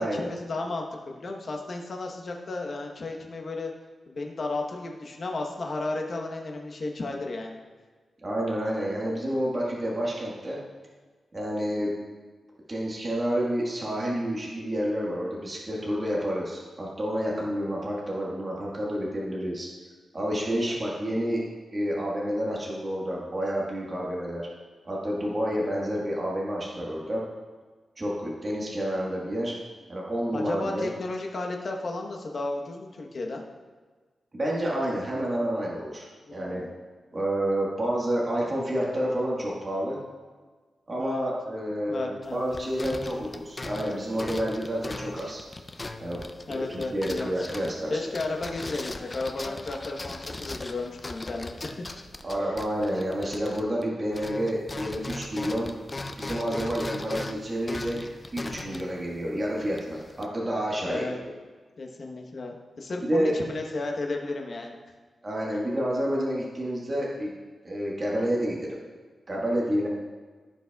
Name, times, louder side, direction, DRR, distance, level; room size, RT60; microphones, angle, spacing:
voice 1, 0.0-3.7 4.1-7.6 20.5-20.8 30.3-33.4 36.3-36.8 41.0-41.3 41.9-43.3 46.5-47.3 47.9-51.8 52.4-52.5 60.8-61.2 61.8-64.7, left 2 dB, 45° left, 1 dB, 1.0 m, -34 dB
voice 2, 8.2-10.6 11.3-11.9 12.7-19.7 20.1-21.4 21.7-24.5 24.8-27.2 28.0-29.5 29.9-30.9 34.3-36.6 37.1-40.0 40.9-45.4 46.0-46.2 46.5-48.0 52.2-55.7 56.2-58.0 58.3-61.3 63.0-63.3 65.2-67.3 67.6-68.8 69.3-69.9, equal, 30° right, -4 dB, 1.4 m, -29 dB
sound 1, 42.2-53.9 54.1-60.3, left 2 dB, 25° left, 0.4 m, -39 dB
15.0 x 5.1 x 2.3 m, 1.4 s
wide cardioid pair, 150°, 0 cm